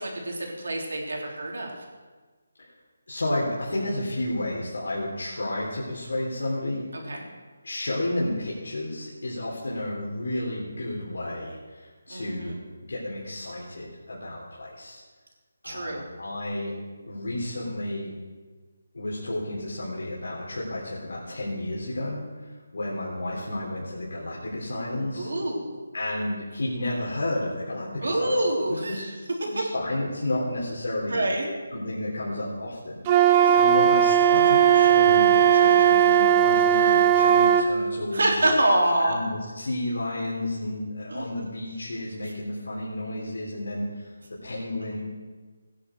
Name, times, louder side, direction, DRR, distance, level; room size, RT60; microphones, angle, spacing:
voice 1, 0.0-1.7 6.9-7.3 12.1-12.6 15.6-16.0 25.2-25.8 28.0-29.1 29.6-29.7 31.1-31.5 33.4-33.5 38.1-39.2 41.1-41.3, right 1 dB, 80° right, 0 dB, 3.6 m, -26 dB
voice 2, 3.1-6.9 7.6-12.6 12.9-15.0 15.6-16.7 17.1-18.1 18.9-25.3 25.9-28.3 28.7-29.1 29.5-31.2 31.7-33.0 33.5-38.5 39.0-44.1 44.4-45.1, left 1 dB, 75° left, -5 dB, 3.8 m, -31 dB
Wind instrument woodwind instrument, 33.1-37.7, right 9 dB, 15° right, 0.5 m, -18 dB
18.0 x 10.0 x 4.8 m, 1.4 s
hypercardioid pair, 175°, 0 cm